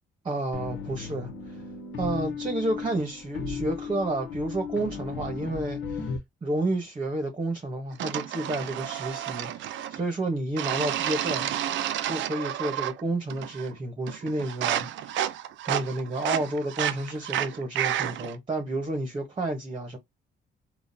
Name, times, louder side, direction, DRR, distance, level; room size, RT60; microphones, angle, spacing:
voice 1, 0.2-1.6 2.0-6.1 6.4-11.5 12.0-15.2 15.7-20.0, right 2 dB, 25° right, 1.0 m, -31 dB
sound 1, 0.5-6.2, left 5 dB, 80° left, 1.1 m, -35 dB
sound 2, 8.0-10.0 10.6-13.0 13.3-13.8 14.1-18.4, right 11 dB, 75° right, 0.5 m, -31 dB
3.7 x 2.4 x 2.7 m
cardioid pair, 90°, 20 cm